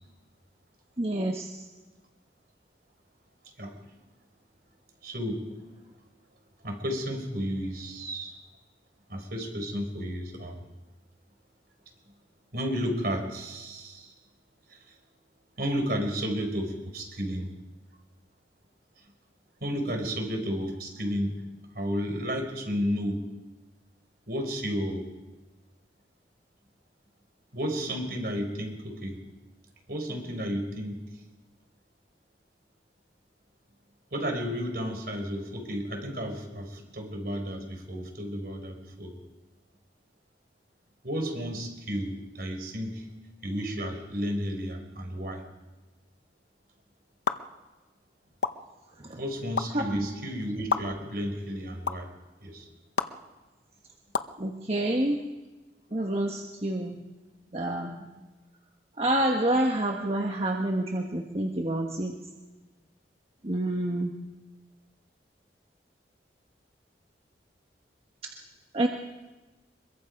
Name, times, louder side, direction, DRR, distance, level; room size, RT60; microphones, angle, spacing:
voice 1, 1.0-1.5 49.0-49.2 49.7-49.8 54.4-55.2 55.9-57.0 57.5-58.1 59.0-62.1 63.4-64.1 68.2-68.3 68.7-68.9, right 1 dB, 35° right, 1 dB, 1.4 m, -28 dB
voice 2, 5.0-5.5 6.6-8.3 9.1-10.6 12.5-14.1 14.7-14.8 15.6-17.5 19.6-21.4 21.7-23.2 24.3-25.0 27.5-29.2 29.9-31.0 34.1-39.1 41.0-43.1 43.4-45.4 49.2-52.1 52.4-52.7, equal, 55° right, 4 dB, 4.5 m, -32 dB
sound 1, 47.3-47.4 48.4-48.5 49.6-49.7 50.7-50.8 51.8-51.9 53.0-53.1 54.1-54.3, left 5 dB, 90° left, 0.9 m, -26 dB
24.5 x 22.5 x 5.3 m, 1.2 s
head